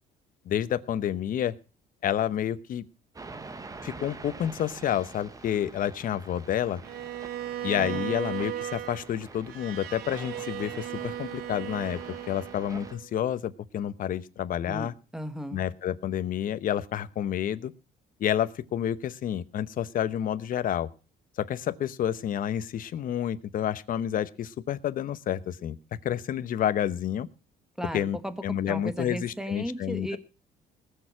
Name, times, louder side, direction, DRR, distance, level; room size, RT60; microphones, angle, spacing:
voice 1, 0.4-1.6 2.0-2.8 3.8-6.8 7.6-14.9 15.5-17.7 18.2-20.9 21.4-25.8 26.0-27.3 27.9-28.2 28.4-30.1, left 10 dB, 55° left, 14 dB, 1.0 m, -29 dB
sound 1, 3.1-13.0, right 3 dB, 20° right, 1.4 m, -46 dB
Bowed string instrument, 6.8-13.1, right 11 dB, 70° right, 1.3 m, -37 dB
voice 2, 7.8-8.1 14.6-15.6 27.8-30.2, right 1 dB, 5° right, 11 dB, 1.7 m, -36 dB
19.5 x 6.8 x 6.0 m, 0.35 s
cardioid pair, 110°, 17 cm